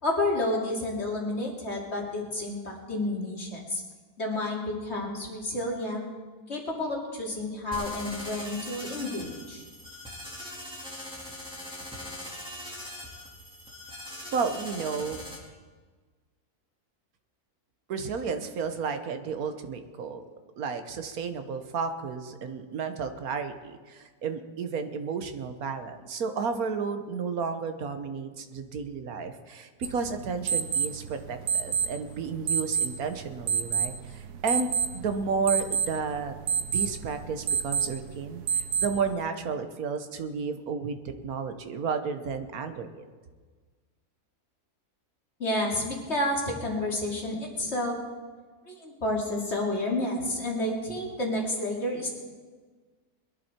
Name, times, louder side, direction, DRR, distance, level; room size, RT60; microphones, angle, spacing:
voice 1, 0.0-3.8 4.2-6.1 6.5-9.6 45.4-48.0 48.7-52.1, left 1 dB, 45° left, -2 dB, 2.9 m, -30 dB
sound 1, 7.7-15.4, left 1 dB, 5° right, 3.9 m, -41 dB
voice 2, 14.3-15.2 17.9-20.2 20.6-34.7 34.9-43.1, right 5 dB, 70° right, 8 dB, 1.5 m, -32 dB
sound 2, 29.8-39.1, right 7 dB, 90° right, 1.4 m, -30 dB
21.5 x 11.0 x 4.4 m, 1.4 s
omnidirectional pair, 1.6 m